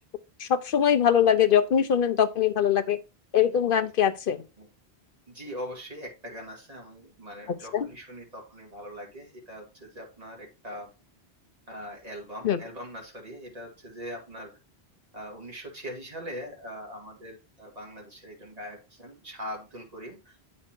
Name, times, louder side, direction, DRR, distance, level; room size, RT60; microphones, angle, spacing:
voice 1, 0.4-3.0 3.3-4.4 7.7-7.9 12.4-12.6, left 9 dB, 60° left, 0.8 m, -22 dB
voice 2, 5.3-10.9 11.7-14.5 15.1-20.3, equal, 35° right, 2.6 m, -41 dB
8.7 x 4.3 x 4.4 m
omnidirectional pair, 1.1 m